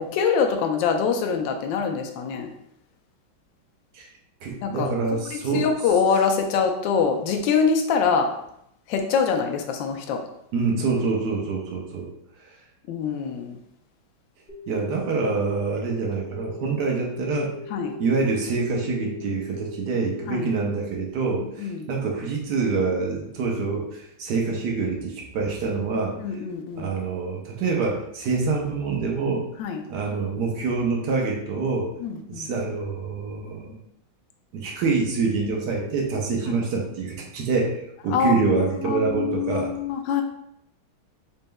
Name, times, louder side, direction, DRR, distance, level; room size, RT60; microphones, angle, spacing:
voice 1, 0.0-2.5 4.6-4.9 5.3-8.3 8.9-10.2 12.9-13.6 17.7-18.0 20.3-20.5 21.3-21.9 26.2-26.9 29.6-29.8 32.0-32.5 36.5-36.6 38.1-40.2, left 6 dB, 75° left, 3 dB, 1.2 m, -24 dB
voice 2, 4.4-5.7 10.5-12.1 14.7-17.5 18.0-26.2 26.7-29.4 29.9-31.9 32.3-33.8 34.5-39.7, right 4 dB, 65° right, 0 dB, 1.1 m, -26 dB
sound 1, 14.5-20.6, left 3 dB, 55° left, 0.6 m, -40 dB
4.1 x 3.5 x 2.2 m, 0.75 s
omnidirectional pair, 2.1 m